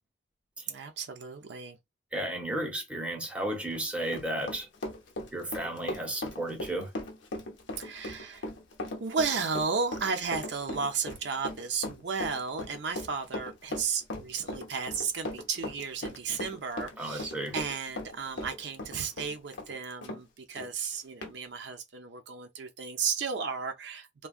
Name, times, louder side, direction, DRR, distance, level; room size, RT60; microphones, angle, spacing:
voice 1, 0.7-1.8 7.8-8.5 9.0-24.3, right 5 dB, 70° right, 0.5 m, -34 dB
voice 2, 2.1-4.7 5.3-6.9 17.0-17.5, right 1 dB, 5° right, 0.7 m, -33 dB
Run, 3.6-20.2 20.6-20.7 21.2-21.3, left 1 dB, 80° left, 0.8 m, -38 dB
3.4 x 2.2 x 2.4 m
head